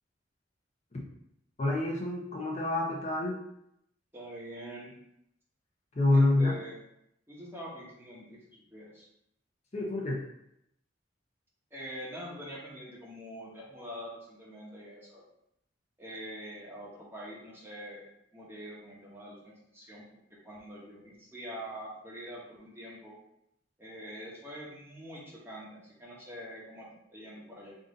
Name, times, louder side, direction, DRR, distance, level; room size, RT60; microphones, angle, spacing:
voice 1, 1.6-3.4 6.0-6.5 9.7-10.2, left 2 dB, 35° left, -2 dB, 0.7 m, -27 dB
voice 2, 4.1-4.9 6.1-6.8 7.3-9.1 11.7-15.2 16.0-18.0 18.3-20.0 20.4-23.2 23.8-27.8, equal, 10° right, -5 dB, 1.1 m, -44 dB
3.7 x 2.7 x 3.9 m, 0.79 s
head